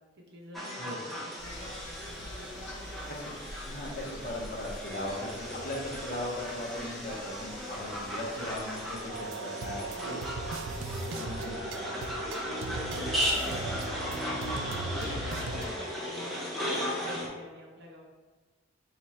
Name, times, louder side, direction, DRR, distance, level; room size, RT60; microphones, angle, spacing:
voice 1, 0.1-3.3 9.9-10.5 12.7-18.0, equal, 60° right, -1 dB, 0.7 m, -48 dB
sound 1, 0.5-17.3, equal, ahead, 0.4 m, -36 dB
sound 2, 1.4-9.1, left 1 dB, 70° left, 0.5 m, -47 dB
voice 2, 3.6-10.2 11.1-11.9, left 1 dB, 45° left, -4 dB, 0.9 m, -38 dB
sound 3, 9.1-15.7, right 3 dB, 85° right, 0.3 m, -38 dB
3.0 x 2.4 x 4.2 m, 1.3 s
head